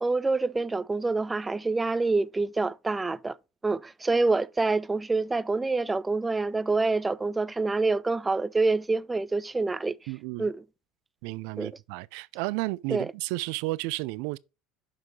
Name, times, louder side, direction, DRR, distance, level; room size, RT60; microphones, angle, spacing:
voice 1, 0.0-3.4 3.6-10.0 10.4-10.6 11.6-11.7 12.9-13.1, right 3 dB, 15° right, 0.5 m, -26 dB
voice 2, 10.1-10.5 11.2-14.4, right 21 dB, 70° right, 0.4 m, -32 dB
6.6 x 6.0 x 3.2 m
supercardioid pair, 90°, 0 cm